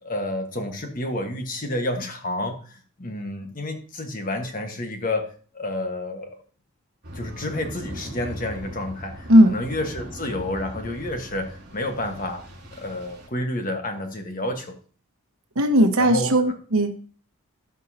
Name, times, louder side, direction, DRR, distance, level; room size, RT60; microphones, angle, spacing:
voice 1, 0.0-5.3 5.5-6.3 7.1-12.5 12.8-14.7 16.0-16.5, left 1 dB, 40° left, 4 dB, 1.3 m, -30 dB
sound 1, 7.0-13.3, equal, 50° right, 3.3 m, -39 dB
voice 2, 15.6-16.9, equal, 75° right, 6 dB, 1.2 m, -17 dB
16.0 x 5.4 x 2.8 m, 0.40 s
head